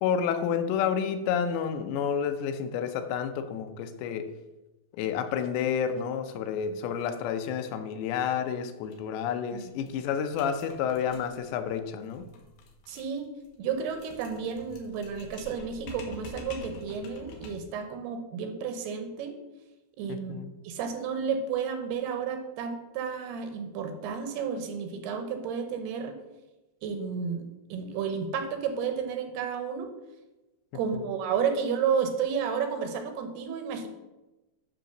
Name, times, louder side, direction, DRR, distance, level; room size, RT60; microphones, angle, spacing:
voice 1, 0.0-4.3 4.9-12.2 20.1-20.5, left 7 dB, 85° left, 9 dB, 3.0 m, -30 dB
sound 1, 8.8-9.0 9.3-9.4 9.6-17.8, left 3 dB, 70° left, 2.5 m, -47 dB
voice 2, 12.9-13.3 13.6-19.4 20.0-20.3 20.6-26.2 26.8-29.9 30.7-33.9, right 6 dB, 75° right, 6 dB, 2.7 m, -32 dB
10.5 x 4.0 x 6.4 m, 1.0 s
omnidirectional pair, 5.0 m